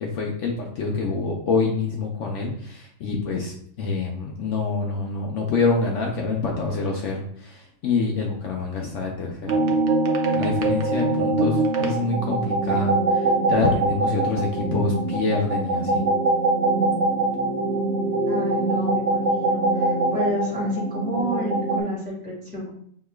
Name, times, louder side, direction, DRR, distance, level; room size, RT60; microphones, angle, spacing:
voice 1, 0.0-9.7 10.3-16.0, left 4 dB, 65° left, 0 dB, 0.9 m, -26 dB
sound 1, 9.5-21.8, right 2 dB, 65° right, 0.9 m, -23 dB
voice 2, 18.2-22.7, equal, 5° right, -6 dB, 1.6 m, -30 dB
5.6 x 3.1 x 2.3 m, 0.63 s
omnidirectional pair, 1.5 m